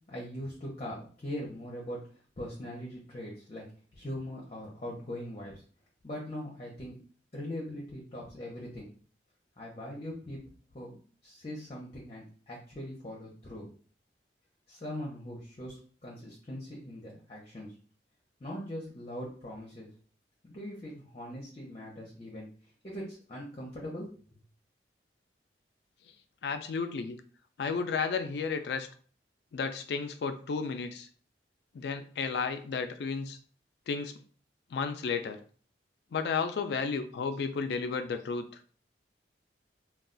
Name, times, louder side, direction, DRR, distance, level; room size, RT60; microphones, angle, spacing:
voice 1, 0.1-2.0 2.4-3.6 3.9-5.6 6.0-7.0 7.3-8.9 9.6-10.4 10.7-13.7 14.7-15.8 16.0-17.7 18.4-19.9 20.4-22.5 22.8-24.1, equal, 35° left, -3 dB, 0.7 m, -41 dB
voice 2, 26.4-27.2 27.6-28.9 29.5-31.1 31.7-33.4 33.9-34.1 34.7-35.4 36.1-38.5, left 5 dB, 65° left, 8 dB, 0.3 m, -32 dB
2.3 x 2.3 x 3.7 m, 0.43 s
head